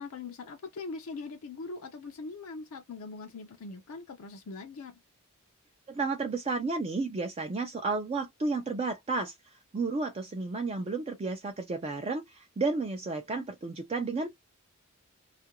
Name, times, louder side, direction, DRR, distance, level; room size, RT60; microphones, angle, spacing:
voice 1, 0.0-5.0, left 3 dB, 65° left, 0.5 m, -41 dB
voice 2, 5.9-9.3 9.7-14.3, right 3 dB, 25° right, 0.4 m, -32 dB
2.4 x 2.2 x 2.8 m
head